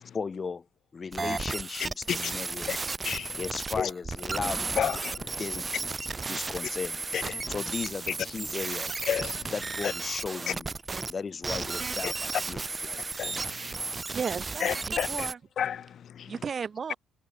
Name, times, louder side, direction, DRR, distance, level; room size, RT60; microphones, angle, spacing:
voice 1, 0.1-0.7 0.9-2.7 3.4-4.9 5.4-5.9 6.3-7.0 7.5-9.0 9.5-10.7 11.1-13.0, left 5 dB, 35° left, 5.0 m, -36 dB
sound 1, 1.1-11.1 11.4-15.3, right 3 dB, 25° right, 3.9 m, -34 dB
voice 2, 3.0-3.3 3.8-3.9 4.8-5.3 7.1-7.5 9.1-9.5 9.8-9.9 12.0-12.1 13.2-13.9 14.6-15.3 15.6-16.3, left 9 dB, 60° left, 1.1 m, -32 dB
voice 3, 14.1-15.4 16.3-17.0, right 6 dB, 45° right, 6.0 m, -34 dB
cardioid pair, 90°, 0 cm